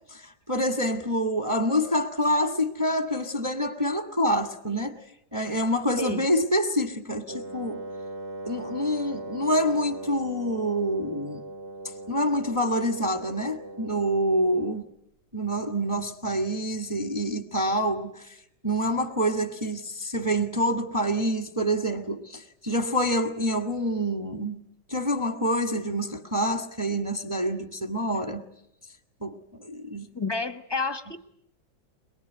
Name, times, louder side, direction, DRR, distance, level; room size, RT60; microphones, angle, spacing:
voice 1, 0.0-5.0 5.3-7.8 8.5-11.4 12.1-14.9 15.3-18.4 18.6-24.6 24.9-28.4 29.2-30.1, equal, 10° right, 1.4 m, -27 dB
Wind instrument woodwind instrument, 7.3-14.9, right 2 dB, 35° right, 1.3 m, -39 dB
voice 2, 30.1-31.3, left 3 dB, 15° left, 1.1 m, -30 dB
23.0 x 23.0 x 9.3 m
omnidirectional pair, 2.0 m